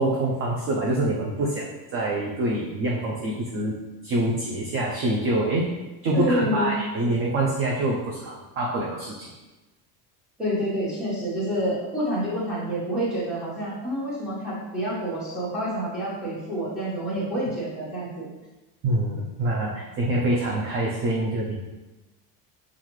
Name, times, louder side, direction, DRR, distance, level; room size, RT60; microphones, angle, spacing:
voice 1, 0.0-3.8 4.0-5.7 6.0-9.3 18.8-21.6, right 1 dB, 30° right, -2 dB, 0.4 m, -25 dB
voice 2, 6.1-6.8 10.4-18.3, equal, ahead, -10 dB, 1.3 m, -28 dB
5.5 x 2.5 x 3.1 m, 1.1 s
cardioid pair, 155°, 42 cm